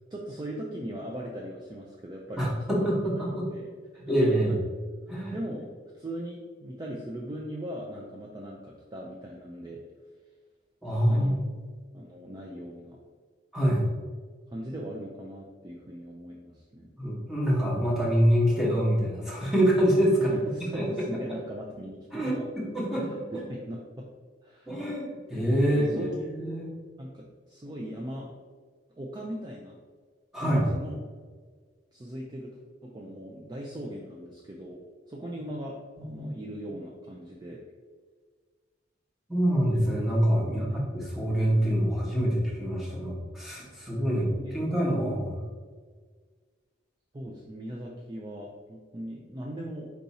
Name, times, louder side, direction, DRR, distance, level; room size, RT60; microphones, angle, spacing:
voice 1, 0.1-4.0 4.5-4.6 5.1-9.8 11.1-11.4 11.9-13.0 14.5-16.9 20.2-22.7 23.0-24.1 24.4-24.8 25.6-26.3 27.0-28.3 29.0-29.8 30.4-31.0 31.9-37.6 40.4-40.8 44.1-44.7 47.1-49.9, equal, 20° right, -2 dB, 0.4 m, -39 dB
voice 2, 2.4-3.4 4.1-4.6 5.1-5.3 10.8-11.5 13.5-13.8 17.0-20.3 20.7-20.8 22.1-23.2 24.7-26.7 30.3-30.7 36.0-36.3 39.3-44.3 44.5-45.4, equal, ahead, -6 dB, 1.1 m, -26 dB
4.6 x 2.7 x 4.1 m, 1.5 s
head